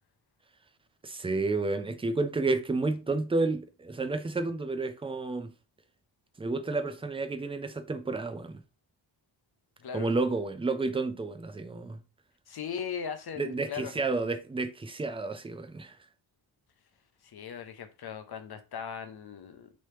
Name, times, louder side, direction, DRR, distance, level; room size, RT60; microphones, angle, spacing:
voice 1, 1.0-5.5 6.4-8.6 9.9-12.0 13.4-15.9, right 3 dB, 15° right, 0.4 m, -31 dB
voice 2, 9.8-10.1 12.5-13.9 17.2-19.7, left 7 dB, 55° left, 0.7 m, -38 dB
3.1 x 2.8 x 3.2 m
cardioid pair, 85°, 46 cm